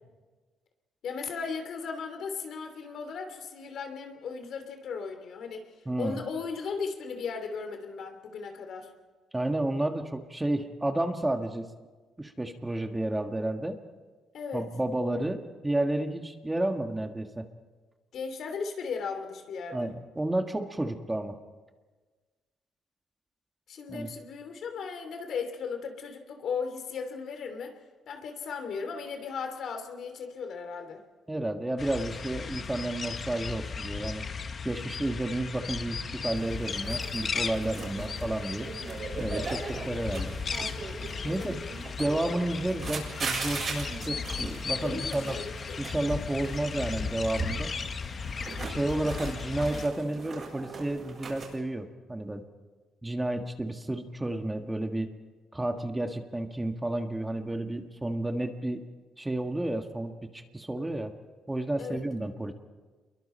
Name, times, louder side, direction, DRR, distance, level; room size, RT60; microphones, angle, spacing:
voice 1, 1.0-8.9 14.3-14.7 18.1-19.9 23.7-27.8 28.1-31.0 41.2-41.7 44.8-45.8 61.8-62.0, left 5 dB, 70° left, 6 dB, 2.9 m, -36 dB
voice 2, 5.8-6.2 9.3-11.7 12.2-13.8 14.5-17.5 19.7-21.4 23.9-24.1 31.3-34.2 34.6-38.7 39.2-40.3 41.2-41.6 42.0-45.4 45.8-47.7 48.6-52.4 53.0-55.1 55.5-58.8 59.2-61.1 61.5-62.5, right 1 dB, 15° right, 5 dB, 1.7 m, -31 dB
sound 1, 31.8-49.9, left 5 dB, 45° left, 1.2 m, -36 dB
sound 2, 36.3-51.6, right 4 dB, 45° right, 7.3 m, -40 dB
28.0 x 22.5 x 4.4 m, 1.4 s
cardioid pair, 90°, 0 cm